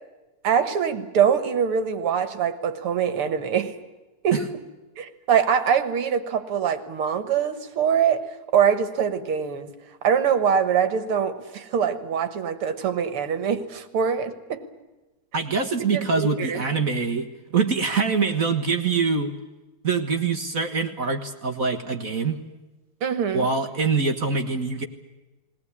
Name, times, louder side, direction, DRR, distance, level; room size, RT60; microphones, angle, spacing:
voice 1, 0.4-3.8 4.2-4.6 5.0-8.2 8.5-9.7 10.0-14.6 15.9-16.6 23.0-23.5, right 7 dB, 80° right, 11 dB, 2.3 m, -23 dB
voice 2, 15.3-19.3 19.8-22.4 23.3-24.8, right 4 dB, 45° right, 6 dB, 1.7 m, -24 dB
21.0 x 18.5 x 9.7 m, 1.1 s
omnidirectional pair, 2.4 m